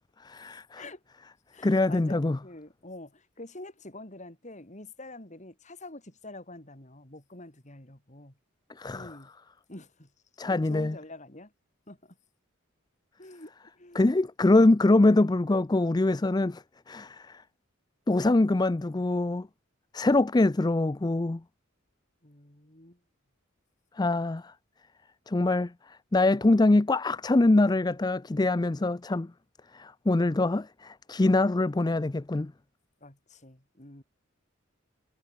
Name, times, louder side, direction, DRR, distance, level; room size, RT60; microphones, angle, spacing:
voice 1, 0.2-0.8 1.6-2.4 8.8-9.1 10.4-11.0 13.9-17.4 18.1-19.5 19.9-21.4 24.0-24.5 25.3-29.3 29.7-32.5, left 2 dB, 20° left, 0.4 m, -24 dB
voice 2, 1.5-8.3 8.9-9.3 9.7-10.1 10.5-11.5 11.9-12.2 13.2-14.2 22.2-23.0 33.0-34.0, left 2 dB, 35° left, 3.8 m, -46 dB
head